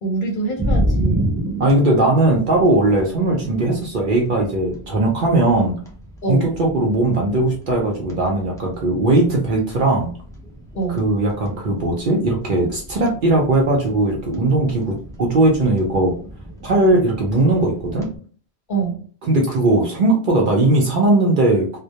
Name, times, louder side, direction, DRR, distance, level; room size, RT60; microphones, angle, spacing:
voice 1, 0.0-1.2 6.2-6.5 10.7-11.0 18.7-19.0, right 4 dB, 55° left, 0 dB, 0.7 m, -24 dB
sound 1, 0.6-18.2, right 1 dB, 5° left, 0.3 m, -31 dB
voice 2, 1.6-5.7 6.3-10.1 10.9-16.1 16.6-18.1 19.2-21.8, right 2 dB, 55° right, -1 dB, 0.6 m, -18 dB
2.2 x 2.1 x 2.7 m, 0.43 s
omnidirectional pair, 1.2 m